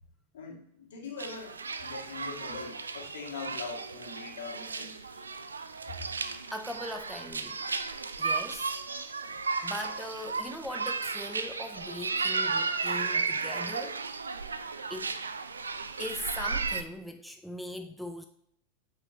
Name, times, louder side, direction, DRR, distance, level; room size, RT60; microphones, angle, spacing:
voice 1, 0.3-1.5 1.8-5.0 13.4-13.5, left 5 dB, 60° left, -1 dB, 1.7 m, -42 dB
sound 1, 1.2-16.8, right 4 dB, 75° right, 0.4 m, -34 dB
voice 2, 5.1-5.7 6.3-7.6 8.2-8.8 9.6-14.0 14.9-15.1 16.0-18.3, left 1 dB, ahead, 6 dB, 0.4 m, -40 dB
8.5 x 4.9 x 2.7 m, 0.72 s
figure-of-eight pair, 90°, 0 cm